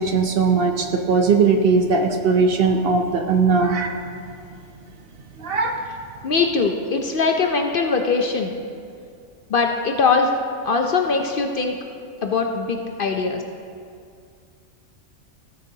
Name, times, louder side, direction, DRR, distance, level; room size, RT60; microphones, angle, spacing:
voice 1, 0.0-4.0 5.4-5.8, right 4 dB, 60° right, 5 dB, 0.7 m, -19 dB
voice 2, 6.2-8.5 9.5-10.3 10.6-11.8 12.2-13.4, left 4 dB, 55° left, 3 dB, 0.6 m, -21 dB
16.0 x 6.6 x 2.8 m, 2.3 s
omnidirectional pair, 1.3 m